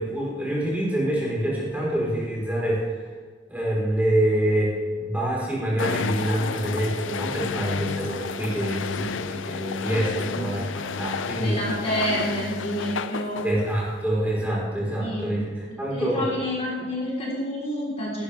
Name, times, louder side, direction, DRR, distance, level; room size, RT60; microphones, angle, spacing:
voice 1, 0.0-2.8 3.5-11.6 13.4-15.4 15.8-16.3, right 1 dB, 10° right, -6 dB, 4.1 m, -26 dB
sound 1, 5.8-14.0, left 5 dB, 90° left, 0.5 m, -31 dB
voice 2, 11.3-13.5 15.0-15.4 15.9-18.2, equal, 35° left, -5 dB, 3.8 m, -29 dB
17.5 x 12.0 x 3.4 m, 1.5 s
head